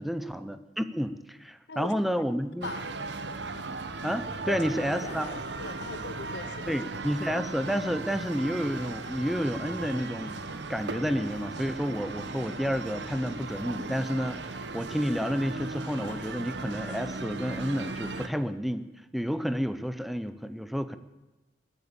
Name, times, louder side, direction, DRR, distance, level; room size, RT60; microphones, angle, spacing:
voice 1, 0.0-2.7 4.0-5.4 6.7-10.4 10.7-21.0, equal, ahead, 11 dB, 0.7 m, -30 dB
sound 1, 2.6-18.3, right 3 dB, 80° right, 1.2 m, -37 dB
Dog, 3.4-3.5 4.1-5.8 6.2-6.5 7.1-8.6 9.0-9.9 10.5-10.6 11.1-13.4 14.1-14.7 16.0-16.8 17.5-17.9, left 2 dB, 40° left, 1.5 m, -51 dB
voice 2, 4.5-4.9 5.2-7.0, left 3 dB, 75° left, 12 dB, 1.0 m, -40 dB
20.5 x 8.2 x 8.7 m, 1.1 s
head